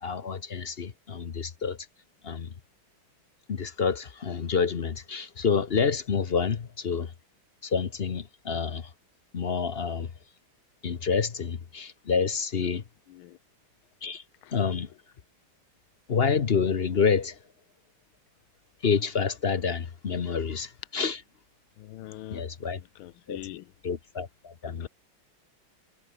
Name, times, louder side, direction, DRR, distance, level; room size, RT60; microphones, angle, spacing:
voice 1, 0.0-1.8 2.2-2.5 3.5-7.1 7.6-8.9 9.3-10.1 10.8-12.8 14.0-14.2 14.5-14.9 16.1-17.4 18.8-21.2 22.3-22.8 23.3-23.4 23.8-24.9, left 5 dB, 45° left, 0.9 m, -28 dB
voice 2, 13.1-13.4 14.4-14.5 21.8-22.5 23.0-23.7 24.6-24.9, left 15 dB, 85° left, 1.6 m, -43 dB
omnidirectional pair, 2.2 m